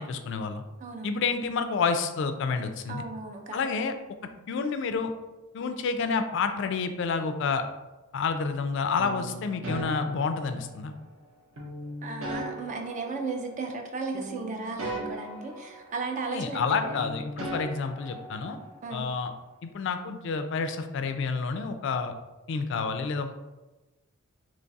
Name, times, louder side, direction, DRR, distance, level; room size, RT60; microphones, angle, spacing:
voice 1, 0.0-0.6 1.0-3.0 3.5-3.9 4.5-5.1 5.5-7.6 8.1-10.9 16.3-18.6 18.9-19.3 19.6-22.1 22.5-23.3, left 5 dB, 55° left, 8 dB, 0.3 m, -29 dB
voice 2, 0.8-1.2 2.9-3.6 12.0-17.0 18.8-19.0, right 3 dB, 35° right, 3 dB, 0.4 m, -35 dB
sound 1, 9.0-11.0 11.6-13.9 14.1-16.5 16.7-18.8, right 1 dB, 70° right, 0.7 m, -38 dB
3.1 x 2.3 x 3.9 m, 1.1 s
head